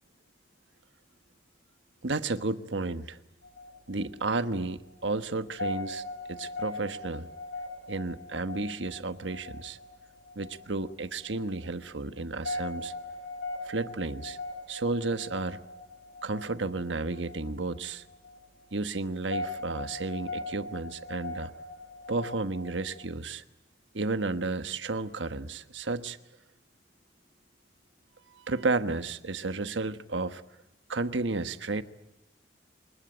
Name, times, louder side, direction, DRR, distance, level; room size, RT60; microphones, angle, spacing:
voice 1, 2.0-3.2 3.9-6.0 6.3-7.3 7.9-9.8 10.3-12.9 13.6-14.4 14.7-15.6 16.2-18.0 18.7-21.5 22.1-23.4 23.9-26.2 28.3-30.4 30.9-31.8, right 3 dB, 85° right, 11 dB, 1.3 m, -32 dB
sound 1, 3.4-23.0, left 2 dB, 85° left, 5.4 m, -40 dB
26.5 x 20.5 x 9.0 m, 0.87 s
head